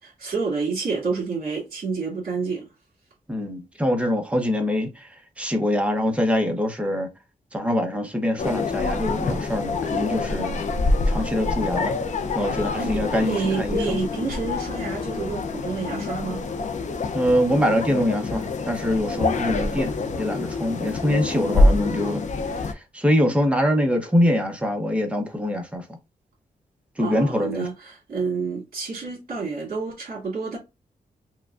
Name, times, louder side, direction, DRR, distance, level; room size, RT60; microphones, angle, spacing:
voice 1, 0.0-2.7 12.8-16.4 27.0-30.6, right 4 dB, 60° right, 2.0 m, -29 dB
voice 2, 3.3-7.1 7.5-10.6 11.1-12.0 12.3-14.0 17.1-25.9 27.0-27.7, left 1 dB, 10° right, 0.8 m, -24 dB
sound 1, 8.4-22.7, left 3 dB, 50° left, 0.5 m, -26 dB
4.7 x 2.2 x 2.4 m
wide cardioid pair, 145°, 15 cm